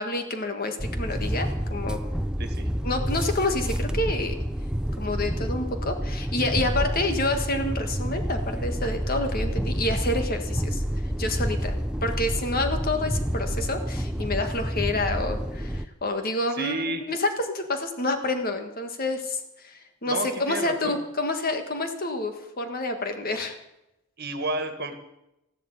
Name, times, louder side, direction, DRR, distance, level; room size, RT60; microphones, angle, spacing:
voice 1, 0.0-2.0 2.8-4.4 5.0-10.8 11.2-11.8 12.0-23.6, left 2 dB, 40° left, 6 dB, 1.7 m, -28 dB
sound 1, 0.8-15.9, equal, 5° right, 0.5 m, -29 dB
voice 2, 16.5-17.0 20.0-21.0 24.2-24.9, right 2 dB, 45° right, 8 dB, 1.8 m, -31 dB
14.0 x 12.0 x 8.3 m, 0.89 s
head